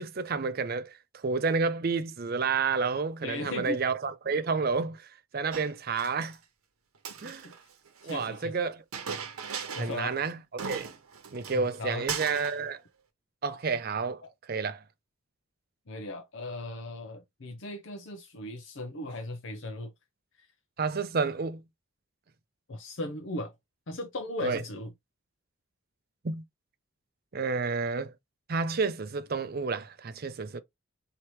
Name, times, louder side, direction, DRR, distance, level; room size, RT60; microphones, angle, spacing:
voice 1, 0.0-6.4 7.2-7.5 8.0-8.8 9.8-10.9 11.3-12.8 13.4-14.2 14.5-14.8 20.8-21.6 24.4-24.6 26.2-26.4 27.3-28.1 28.5-30.6, right 4 dB, 45° right, 0.5 m, -30 dB
voice 2, 3.2-3.8 7.2-7.5 8.0-8.5 9.7-10.2 11.5-12.1 14.2-14.3 15.9-19.9 20.4-20.5 22.7-23.5 23.9-24.9, left 1 dB, 60° left, 0.7 m, -37 dB
Chink clink, 5.5-6.4 6.9-8.2 8.9-10.0 10.3-10.4 10.6-11.8 12.1-12.6, right 6 dB, 85° right, 0.9 m, -38 dB
4.5 x 2.9 x 3.1 m
head